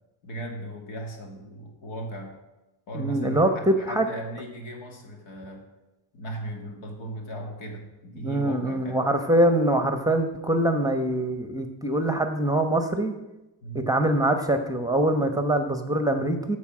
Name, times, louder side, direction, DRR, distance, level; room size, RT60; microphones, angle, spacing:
voice 1, 0.2-2.3 2.9-5.6 6.1-9.0 13.6-13.9, right 1 dB, 75° left, 2 dB, 2.4 m, -37 dB
voice 2, 2.9-4.1 8.2-13.1 13.7-16.6, right 1 dB, 10° right, 6 dB, 1.0 m, -24 dB
13.5 x 4.7 x 6.1 m, 0.99 s
supercardioid pair, 80°, 46 cm